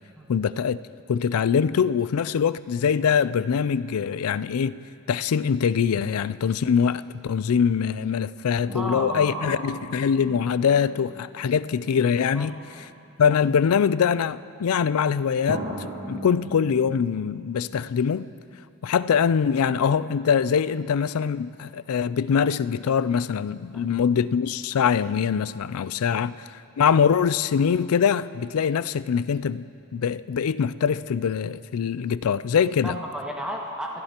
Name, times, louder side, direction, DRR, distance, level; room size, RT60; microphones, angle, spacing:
voice 1, 0.3-0.8 1.1-4.8 5.1-12.6 13.2-18.3 18.8-26.3 26.8-29.6 29.9-33.0, left 7 dB, 75° left, 16 dB, 0.4 m, -23 dB
voice 2, 8.7-9.8 12.3-12.9 23.7-23.9 32.8-34.0, equal, 5° right, -3 dB, 1.7 m, -33 dB
sound 1, 8.7-12.6 13.5-13.6 15.5-18.8 19.1-19.2, right 1 dB, 35° right, 2.2 m, -40 dB
27.0 x 16.0 x 2.9 m, 2.6 s
head